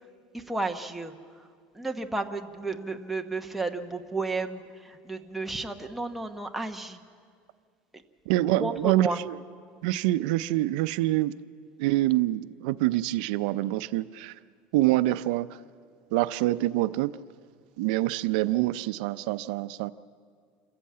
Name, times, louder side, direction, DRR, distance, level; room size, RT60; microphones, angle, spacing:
voice 1, 0.3-1.1 1.7-7.0 8.5-9.2, right 3 dB, 5° right, 3 dB, 1.0 m, -32 dB
voice 2, 8.3-9.4 9.8-11.3 11.8-14.3 14.7-15.5 16.1-17.1 17.8-19.9, right 16 dB, 80° right, 14 dB, 0.5 m, -26 dB
28.0 x 14.0 x 8.6 m, 2.1 s
cardioid pair, 155°, 4 cm